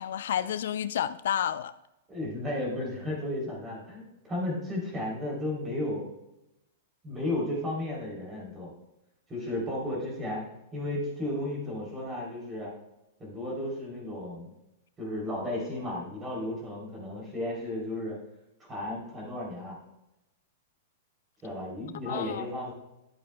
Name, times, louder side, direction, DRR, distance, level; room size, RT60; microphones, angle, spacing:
voice 1, 0.0-1.7 22.1-22.4, left 10 dB, 75° left, 14 dB, 0.3 m, -30 dB
voice 2, 2.1-6.0 7.0-8.7 9.3-10.4 10.7-12.7 13.2-14.5 15.0-18.2 18.7-19.8 21.4-22.7, left 1 dB, 15° right, -3 dB, 3.2 m, -34 dB
11.5 x 8.4 x 2.2 m, 0.90 s
supercardioid pair, 155°, 0 cm